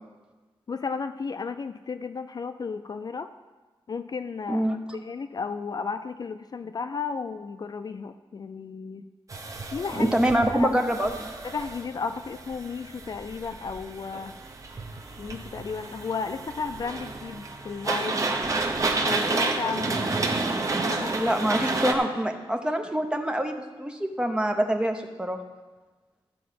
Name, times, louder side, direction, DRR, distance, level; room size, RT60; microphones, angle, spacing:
voice 1, 0.7-3.3 3.9-4.6 4.9-9.1 9.7-10.1 10.6-10.7 11.4-14.3 15.2-18.4 19.1-20.1 20.8-21.2 21.6-21.7, left 5 dB, 45° left, 10 dB, 0.3 m, -33 dB
sound 1, 9.3-21.9, right 3 dB, 35° right, 1.0 m, -30 dB
voice 2, 10.0-11.3 21.1-25.4, right 1 dB, 10° right, 4 dB, 0.8 m, -25 dB
13.0 x 4.6 x 7.5 m, 1.3 s
wide cardioid pair, 175°, 10 cm